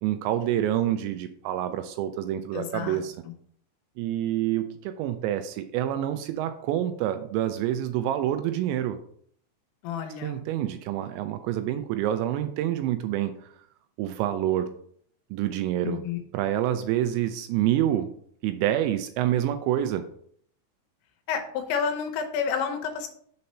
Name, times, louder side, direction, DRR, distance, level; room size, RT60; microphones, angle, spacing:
voice 1, 0.0-3.1 4.0-9.0 10.2-13.3 14.0-14.7 15.3-16.0 16.3-18.1 18.4-20.0, right 12 dB, 85° right, 9 dB, 2.7 m, -27 dB
voice 2, 2.5-3.3 9.8-10.4 15.8-16.2 21.3-23.1, left 7 dB, 80° left, 5 dB, 3.0 m, -30 dB
6.8 x 4.1 x 5.4 m, 0.62 s
omnidirectional pair, 5.4 m